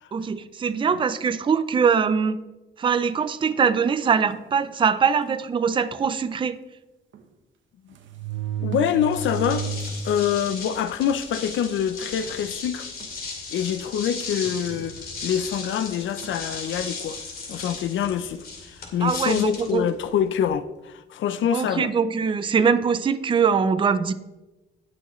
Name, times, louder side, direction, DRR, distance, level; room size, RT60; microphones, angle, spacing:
voice 1, 0.1-2.4 2.8-6.6 19.0-19.8 21.5-24.1, right 6 dB, 25° right, 0.4 m, -22 dB
sound 1, 4.3-4.6 5.3-5.4 5.7-5.8 7.1-7.2 7.9-10.2 10.6-10.7 11.5-11.6 12.0-12.4 13.0-13.2 14.4-15.3 16.2-16.5, right 5 dB, 75° right, 1.1 m, -32 dB
voice 2, 8.6-9.7 10.0-12.9 13.5-17.2 17.5-21.9, left 9 dB, 75° left, 0.5 m, -25 dB
sound 2, 9.0-20.5, left 4 dB, 50° left, 2.3 m, -37 dB
18.5 x 6.2 x 3.1 m
wide cardioid pair, 165°, 20 cm